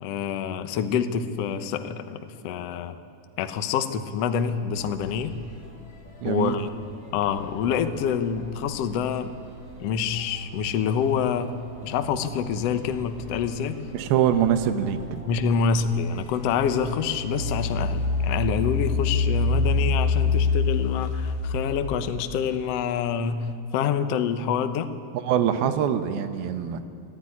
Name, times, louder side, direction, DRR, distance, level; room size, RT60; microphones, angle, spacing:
voice 1, 0.0-3.0 3.4-5.3 6.2-6.7 7.1-9.3 9.8-11.6 11.8-13.8 15.2-24.9, left 7 dB, 75° left, 9 dB, 1.4 m, -26 dB
sound 1, 4.7-18.1, right 1 dB, 30° left, 3.9 m, -44 dB
voice 2, 6.2-6.6 13.9-15.2 25.2-26.9, right 9 dB, 85° right, 9 dB, 3.0 m, -24 dB
Engine, 15.6-15.7 16.3-22.2, left 3 dB, 60° left, 2.3 m, -25 dB
24.5 x 14.5 x 9.9 m, 2.5 s
omnidirectional pair, 4.4 m